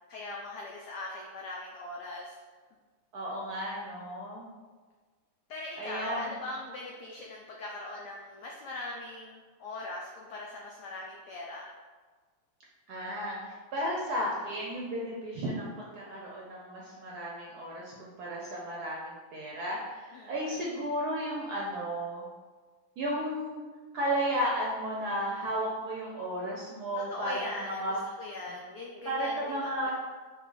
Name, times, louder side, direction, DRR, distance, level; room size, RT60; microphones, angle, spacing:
voice 1, 0.1-2.4 5.5-11.7 20.1-20.6 26.9-29.9, left 2 dB, 80° left, -1 dB, 0.9 m, -41 dB
voice 2, 3.1-4.5 5.8-6.4 12.9-22.2 23.0-23.6 23.9-28.0 29.0-29.9, equal, 70° right, -4 dB, 0.9 m, -34 dB
5.6 x 2.5 x 3.8 m, 1.4 s
omnidirectional pair, 2.3 m